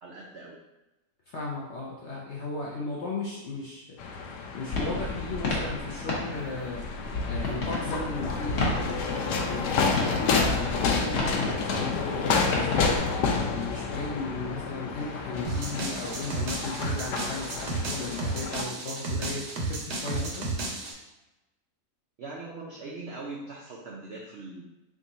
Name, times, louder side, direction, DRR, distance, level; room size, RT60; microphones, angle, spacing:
voice 1, 0.0-0.6 22.2-24.7, right 3 dB, 85° right, -3 dB, 0.5 m, -41 dB
voice 2, 1.3-4.0 4.5-6.9 7.2-20.5, left 3 dB, 65° left, -4 dB, 0.7 m, -36 dB
sound 1, 4.0-18.6, left 4 dB, 80° left, 1.1 m, -30 dB
sound 2, 4.7-13.0, left 2 dB, 50° left, 1.0 m, -32 dB
sound 3, 15.4-20.9, right 2 dB, 60° right, 0.8 m, -33 dB
3.6 x 2.4 x 4.0 m, 1.0 s
omnidirectional pair, 1.8 m